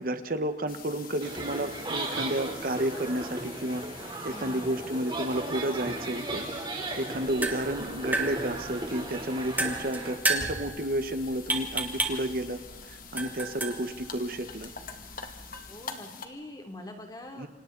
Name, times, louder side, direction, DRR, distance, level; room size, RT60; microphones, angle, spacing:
voice 1, 0.0-6.5 7.0-12.6 12.9-14.7 17.4-17.5, right 1 dB, 55° right, 8 dB, 1.4 m, -31 dB
sound 1, 0.7-16.3, left 5 dB, 50° left, 2.4 m, -46 dB
sound 2, 1.2-10.1, right 2 dB, 25° right, 4.0 m, -36 dB
voice 2, 4.3-4.7 15.7-17.5, left 1 dB, 20° left, 4 dB, 3.1 m, -44 dB
sound 3, 7.1-15.7, right 2 dB, 10° right, 2.3 m, -34 dB
29.0 x 26.5 x 4.1 m, 1.1 s
head